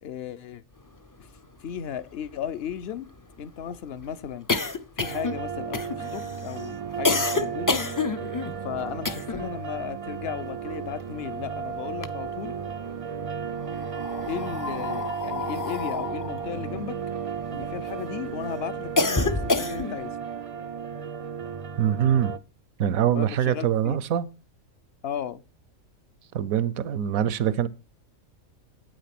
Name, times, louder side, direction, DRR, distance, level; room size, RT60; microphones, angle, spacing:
voice 1, 0.0-0.6 1.2-1.3 1.6-3.1 3.4-4.5 5.0-7.8 8.6-12.6 14.3-17.0 17.5-20.2 23.1-24.0 25.0-25.4, left 8 dB, 55° left, 0.8 m, -35 dB
sound 1, 1.4-1.5 1.7-1.8 2.1-9.6 9.9-11.4 11.8-12.7 13.5-17.9 18.4-20.1, left 3 dB, 30° left, 0.3 m, -29 dB
sound 2, 5.0-22.4, right 7 dB, 45° right, 0.4 m, -34 dB
voice 2, 21.8-22.3 22.8-24.3 26.3-27.7, right 9 dB, 85° right, 1.2 m, -24 dB
9.3 x 8.9 x 5.9 m
omnidirectional pair, 1.4 m